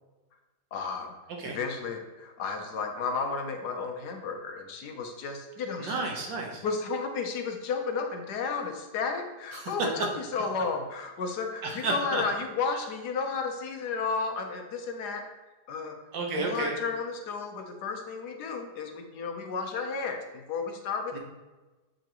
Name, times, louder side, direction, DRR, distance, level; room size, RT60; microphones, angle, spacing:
voice 1, 0.7-1.1 1.4-6.0 6.6-15.2 15.7-16.0 16.3-21.2, left 4 dB, 70° left, 4 dB, 1.2 m, -33 dB
voice 2, 5.8-6.6 9.5-9.7 11.6-12.2 16.1-16.7 21.1-21.2, right 3 dB, 80° right, 0 dB, 1.9 m, -32 dB
7.7 x 5.1 x 3.0 m, 1.2 s
omnidirectional pair, 2.0 m